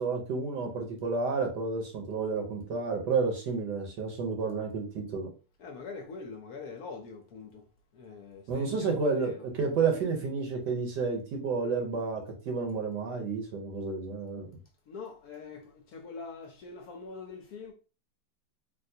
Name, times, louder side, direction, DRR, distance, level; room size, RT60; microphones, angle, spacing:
voice 1, 0.0-5.3 8.5-14.5, right 4 dB, 75° right, 1.4 m, -31 dB
voice 2, 5.6-7.6 7.9-9.5 14.9-17.7, left 4 dB, 70° left, 1.0 m, -44 dB
3.5 x 2.5 x 2.6 m
omnidirectional pair, 1.9 m